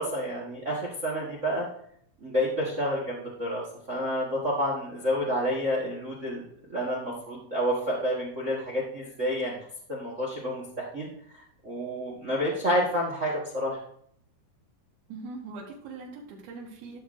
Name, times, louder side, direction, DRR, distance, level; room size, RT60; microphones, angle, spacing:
voice 1, 0.0-1.7 2.2-6.4 6.7-9.6 9.9-13.8, equal, 70° right, -3 dB, 0.7 m, -29 dB
voice 2, 15.1-17.0, right 3 dB, 90° right, -1 dB, 3.5 m, -41 dB
13.0 x 6.5 x 2.6 m, 0.66 s
omnidirectional pair, 4.3 m